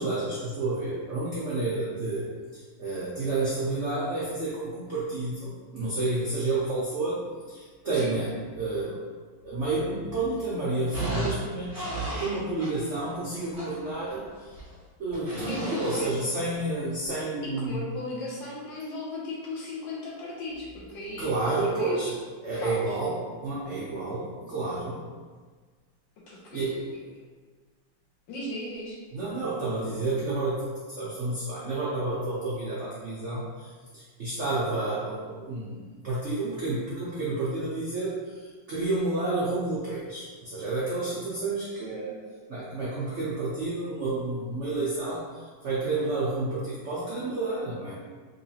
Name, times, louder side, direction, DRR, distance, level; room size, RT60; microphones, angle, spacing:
voice 1, 0.0-2.3 2.5-7.2 7.5-9.0 9.4-14.5 15.0-17.8 21.2-22.1 22.4-23.2 23.4-25.0 26.5-26.7 29.1-30.6 30.9-42.1 42.5-47.9, right 2 dB, 75° right, -7 dB, 0.6 m, -30 dB
sound 1, 10.9-12.9 13.4-14.7 15.1-16.1 17.0-17.1, right 1 dB, 25° right, 0.7 m, -33 dB
voice 2, 15.5-16.2 17.4-21.3 21.6-22.1 22.5-23.0 26.3-27.0 28.3-29.0, left 1 dB, 75° left, -4 dB, 1.5 m, -37 dB
3.9 x 3.0 x 2.8 m, 1.5 s
omnidirectional pair, 2.1 m